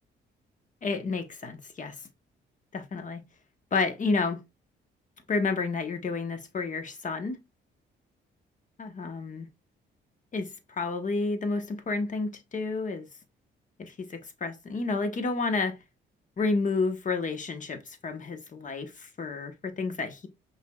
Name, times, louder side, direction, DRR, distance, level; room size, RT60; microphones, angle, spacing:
voice 1, 0.8-2.0 2.7-3.2 3.7-4.4 5.3-7.4 8.8-9.5 10.3-13.1 13.8-15.8 16.4-20.3, left 3 dB, 40° left, 1.1 m, -30 dB
5.5 x 3.4 x 2.3 m
cardioid pair, 90°, 20 cm